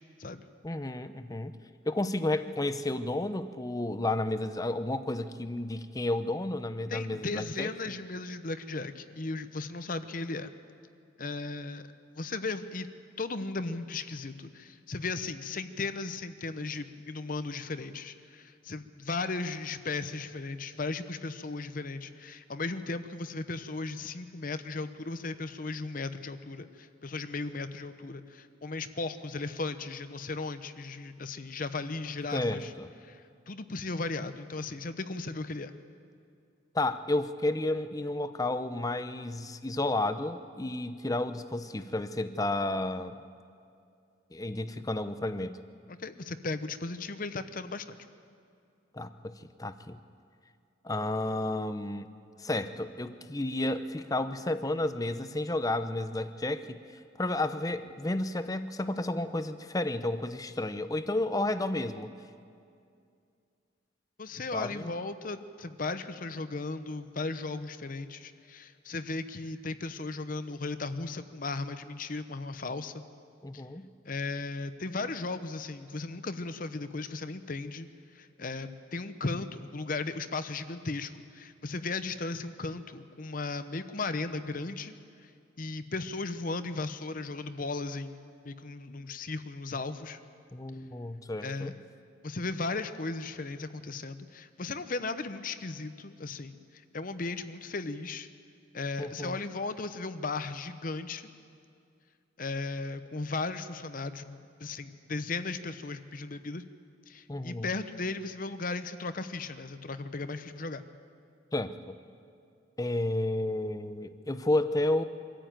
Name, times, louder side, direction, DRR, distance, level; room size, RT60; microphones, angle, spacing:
voice 1, 0.6-1.5 1.9-7.7 32.3-32.9 36.7-43.2 44.3-45.6 48.9-50.0 50.8-52.1 52.4-56.8 57.2-62.1 64.5-64.9 73.4-73.9 90.5-91.7 99.0-99.4 107.3-107.7 111.5-112.0 112.8-115.0, left 2 dB, 20° left, 11 dB, 0.7 m, -31 dB
voice 2, 6.9-10.5 11.2-11.9 12.1-12.9 13.2-32.7 33.0-35.7 45.9-48.0 64.2-73.0 73.5-73.6 74.0-77.9 78.1-85.3 85.6-88.2 88.4-90.2 91.4-91.7 92.2-98.3 98.7-101.3 102.4-106.6 107.1-110.8, left 3 dB, 45° left, 11 dB, 0.8 m, -36 dB
24.5 x 14.0 x 9.1 m, 2.4 s
head